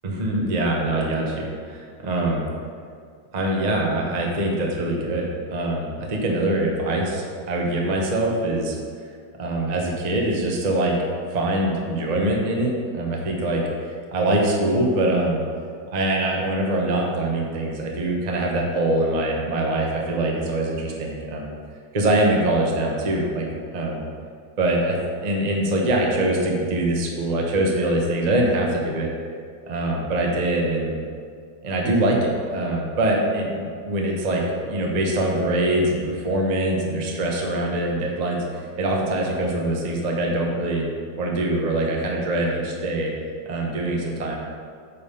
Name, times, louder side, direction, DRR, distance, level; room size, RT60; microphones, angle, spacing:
voice 1, 0.0-2.4 3.3-8.8 9.4-11.0 11.3-15.4 15.9-21.5 21.9-23.4 23.7-24.0 24.6-29.1 29.7-30.9 31.6-40.9 41.2-43.1 43.5-44.4, right 1 dB, 35° right, -1 dB, 0.7 m, -23 dB
8.7 x 3.5 x 5.5 m, 2.2 s
omnidirectional pair, 2.0 m